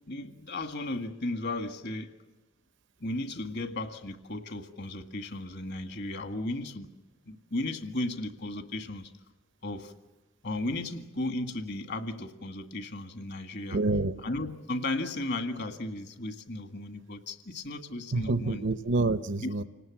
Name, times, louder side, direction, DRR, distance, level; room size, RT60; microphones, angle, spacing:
voice 1, 0.1-2.1 3.0-6.9 7.3-9.1 9.6-9.9 10.4-13.8 14.2-18.6 19.4-19.5, left 2 dB, 60° left, 7 dB, 1.8 m, -35 dB
voice 2, 13.7-14.1 18.1-19.6, right 2 dB, 65° right, 11 dB, 0.8 m, -27 dB
29.5 x 19.0 x 7.5 m, 1.2 s
head